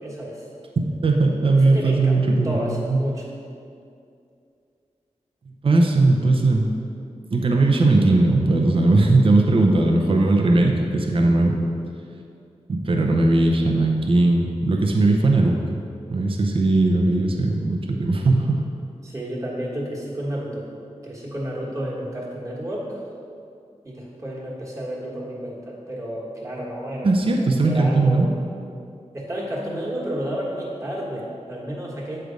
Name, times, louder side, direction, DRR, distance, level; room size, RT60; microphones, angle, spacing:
voice 1, 0.0-0.4 1.6-3.2 19.0-20.6 21.0-23.0 23.8-27.1 27.6-28.3 29.1-32.2, equal, 25° right, -5 dB, 1.3 m, -31 dB
voice 2, 1.0-3.0 5.6-6.7 7.3-11.6 12.7-15.8 16.1-18.6 27.0-28.3, right 2 dB, 50° right, 1 dB, 0.6 m, -19 dB
8.0 x 3.3 x 5.0 m, 2.5 s
wide cardioid pair, 120°, 12 cm